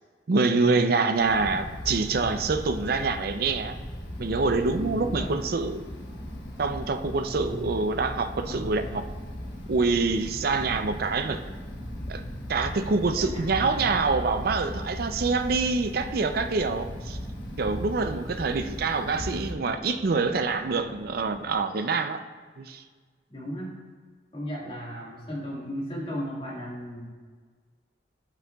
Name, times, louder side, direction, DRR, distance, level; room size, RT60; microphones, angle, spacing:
voice 1, 0.3-3.8 4.2-5.8 6.6-9.0 9.7-11.4 12.1-12.2 12.5-17.2 17.6-22.2 22.6-22.8, right 4 dB, 60° right, 8 dB, 0.5 m, -26 dB
Wind, 1.1-19.5, equal, 85° left, 1.3 m, -38 dB
sound 1, 4.1-21.6, equal, 25° right, 0.8 m, -45 dB
voice 2, 4.8-5.4 7.4-7.8 8.4-8.9 13.1-13.9 23.3-23.8 24.3-27.1, equal, 30° left, -4 dB, 1.8 m, -36 dB
10.5 x 8.0 x 2.3 m, 1.5 s
head